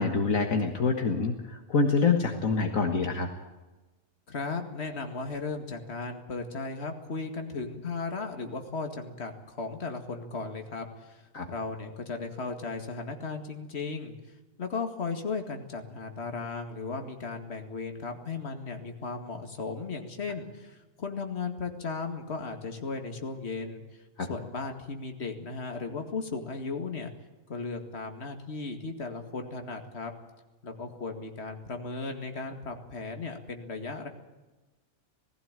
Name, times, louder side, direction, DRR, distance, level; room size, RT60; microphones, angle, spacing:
voice 1, 0.0-3.3 11.3-11.5 24.2-24.3, left 4 dB, 65° left, 4 dB, 1.9 m, -26 dB
voice 2, 4.3-11.2 11.5-14.1 14.6-23.8 24.2-27.1 27.5-30.1 30.6-34.1, left 4 dB, 45° left, 5 dB, 2.3 m, -36 dB
19.0 x 16.0 x 9.0 m, 1.2 s
omnidirectional pair, 1.5 m